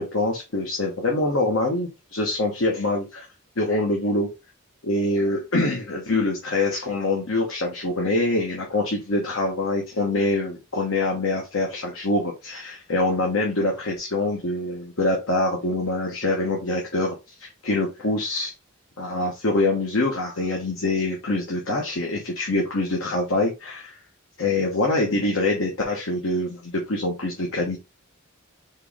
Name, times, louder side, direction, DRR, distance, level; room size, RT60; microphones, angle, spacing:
voice 1, 0.0-3.2 3.6-4.3 4.8-17.1 17.4-18.5 19.0-23.9 24.4-27.8, left 2 dB, 75° left, 0 dB, 1.1 m, -25 dB
4.5 x 3.1 x 3.5 m, 0.26 s
head